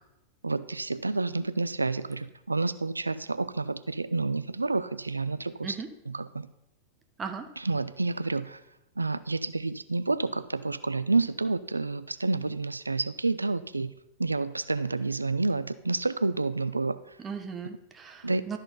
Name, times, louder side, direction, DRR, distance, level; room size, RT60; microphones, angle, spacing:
voice 1, 0.4-5.8 6.1-6.5 7.6-8.6 9.0-13.9 14.2-17.0 18.2-18.6, right 3 dB, 80° right, 13 dB, 0.4 m, -29 dB
voice 2, 7.2-7.5 17.2-18.6, right 6 dB, 20° right, 6 dB, 1.1 m, -37 dB
12.5 x 4.4 x 5.4 m, 0.87 s
figure-of-eight pair, 90°, 0 cm